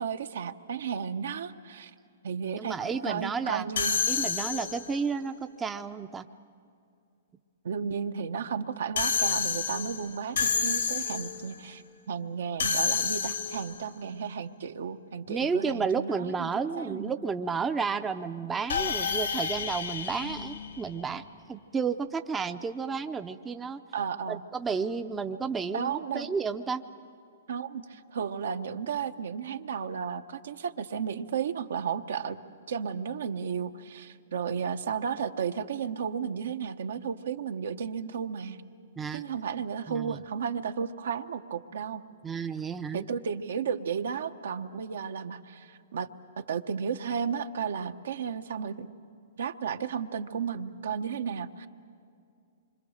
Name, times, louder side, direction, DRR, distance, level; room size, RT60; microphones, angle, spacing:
voice 1, 0.0-1.9 2.2-2.8 3.0-4.0 7.6-16.5 16.8-17.1 20.1-20.3 23.9-24.4 25.7-26.3 27.5-32.4 32.7-38.6 39.1-42.0 42.9-46.1 46.4-48.9 49.4-51.7, right 7 dB, 75° right, 8 dB, 1.0 m, -33 dB
voice 2, 2.6-3.7 4.1-6.3 15.3-21.2 21.5-23.8 24.3-26.8 39.0-39.2 39.9-40.2 42.2-43.1, right 5 dB, 10° right, 8 dB, 0.6 m, -32 dB
sound 1, 3.8-5.0 9.0-11.5 12.6-13.9 18.7-21.2, left 6 dB, 85° left, 2.1 m, -30 dB
26.0 x 25.0 x 6.5 m, 2.4 s
hypercardioid pair, 145°, 0 cm